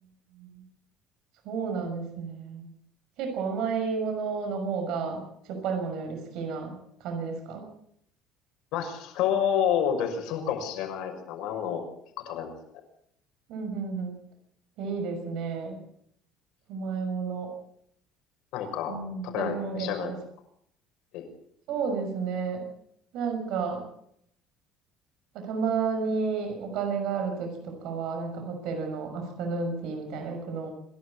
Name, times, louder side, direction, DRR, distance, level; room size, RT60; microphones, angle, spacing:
voice 1, 1.4-2.7 3.2-6.7 7.0-7.6 13.5-14.1 14.8-15.8 16.7-17.5 18.9-20.2 21.7-22.6 23.1-23.8 25.3-30.7, right 5 dB, 65° right, 4 dB, 6.1 m, -31 dB
voice 2, 8.7-11.9 12.3-12.5 18.5-19.0 19.2-20.1 21.1-21.3, left 9 dB, 75° left, 4 dB, 6.1 m, -29 dB
26.5 x 12.0 x 8.8 m, 0.72 s
cardioid pair, 135°, 0 cm